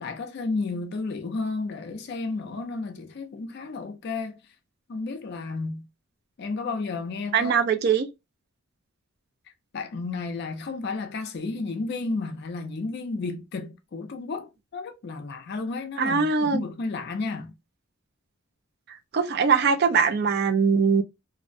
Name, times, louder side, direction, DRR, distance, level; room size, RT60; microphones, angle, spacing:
voice 1, 0.0-4.4 4.9-5.9 6.4-7.6 9.7-17.5, left 3 dB, 50° left, 0.4 m, -32 dB
voice 2, 7.3-8.1 16.0-16.6 19.1-21.0, right 5 dB, 50° right, 0.4 m, -21 dB
2.5 x 2.0 x 2.5 m
head